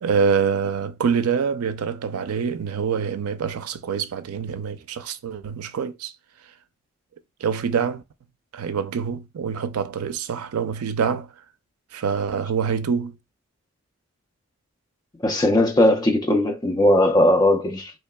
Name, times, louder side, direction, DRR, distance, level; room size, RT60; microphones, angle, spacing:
voice 1, 0.0-6.1 7.4-8.0 8.5-11.3 11.9-13.2, right 6 dB, 85° right, 0.4 m, -25 dB
voice 2, 15.2-17.9, left 1 dB, 20° left, 0.4 m, -18 dB
3.7 x 3.1 x 2.2 m
head